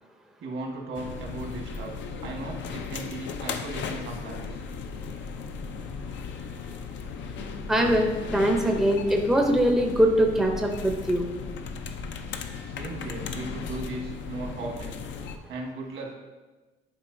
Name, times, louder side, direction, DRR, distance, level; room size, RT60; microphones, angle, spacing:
voice 1, 0.4-1.9 2.2-4.6 12.6-15.0 15.5-16.1, right 2 dB, 75° right, 0 dB, 1.4 m, -37 dB
sound 1, 1.0-15.4, left 5 dB, 65° left, 0.5 m, -36 dB
voice 2, 7.7-11.3, equal, ahead, 2 dB, 0.6 m, -22 dB
10.5 x 4.4 x 2.6 m, 1.2 s
cardioid pair, 145°, 20 cm